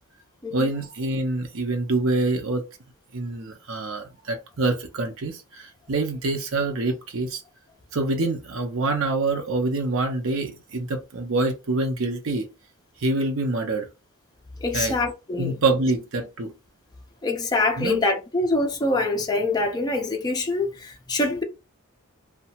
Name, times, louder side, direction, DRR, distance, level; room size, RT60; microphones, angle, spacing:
voice 1, 0.5-2.6 3.1-7.4 7.9-12.5 13.0-13.9 14.7-14.9 15.4-16.5 17.8-18.0, right 2 dB, 60° right, 0.7 m, -26 dB
voice 2, 14.6-15.6 17.2-21.4, left 2 dB, 20° left, 0.5 m, -25 dB
2.7 x 2.2 x 2.8 m
head